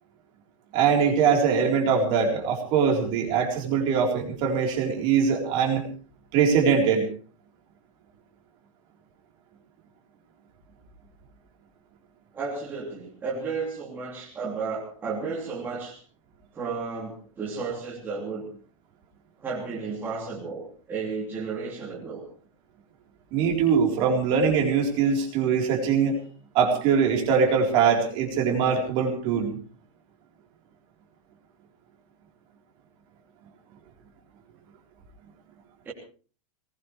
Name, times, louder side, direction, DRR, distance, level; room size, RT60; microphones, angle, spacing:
voice 1, 0.7-5.9 6.3-7.1 23.3-26.2 26.5-29.6, right 6 dB, 30° right, 1 dB, 4.0 m, -22 dB
voice 2, 12.3-16.0 16.5-18.5 19.4-22.3 35.8-35.9, right 4 dB, 10° right, -5 dB, 3.0 m, -33 dB
21.5 x 19.5 x 3.4 m, 0.40 s
supercardioid pair, 180°, 17 cm